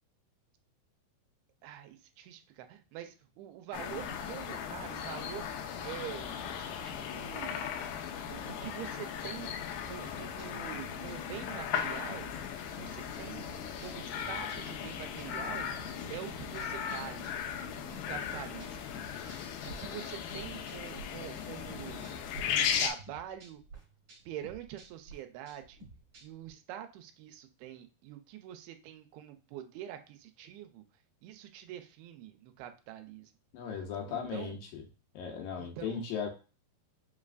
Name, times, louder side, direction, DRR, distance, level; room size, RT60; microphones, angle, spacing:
voice 1, 1.6-5.5 5.8-6.3 6.6-7.7 8.3-9.6 9.9-12.3 12.7-13.5 13.8-15.7 16.1-17.3 17.9-18.9 19.7-22.1 22.5-23.6 24.3-25.8 26.2-30.8 31.2-33.3 34.1-34.6 35.6-36.1, right 11 dB, 85° right, 7 dB, 2.5 m, -45 dB
sound 1, 3.7-22.9, left 8 dB, 90° left, 2.6 m, -37 dB
sound 2, 10.0-21.1 21.3-22.4 22.7-26.5, equal, 40° right, 2.5 m, -52 dB
voice 2, 33.5-34.8 35.1-36.3, left 6 dB, 75° left, 2 dB, 2.3 m, -37 dB
5.9 x 3.1 x 2.5 m, 0.33 s
omnidirectional pair, 4.5 m